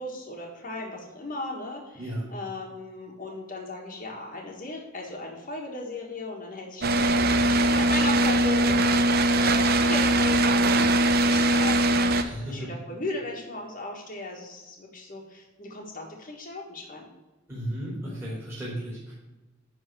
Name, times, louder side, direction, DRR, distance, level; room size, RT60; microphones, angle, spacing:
voice 1, 0.0-17.1, left 2 dB, 45° left, -2 dB, 1.6 m, -37 dB
sound 1, 6.8-12.2, right 1 dB, 50° right, 0.6 m, -21 dB
voice 2, 12.1-12.7 17.5-19.1, right 1 dB, 15° right, -8 dB, 3.0 m, -34 dB
10.5 x 3.8 x 6.1 m, 1.1 s
head